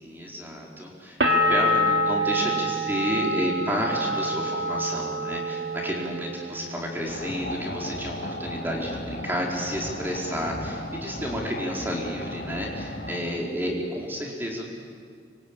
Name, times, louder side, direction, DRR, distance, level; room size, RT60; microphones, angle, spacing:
voice 1, 0.0-14.7, equal, 10° right, -2 dB, 4.6 m, -31 dB
sound 1, 1.2-6.8 7.1-7.9, equal, 70° right, 2.9 m, -26 dB
sound 2, 7.1-13.2, left 1 dB, 50° left, 3.7 m, -36 dB
25.5 x 24.5 x 8.9 m, 2.1 s
head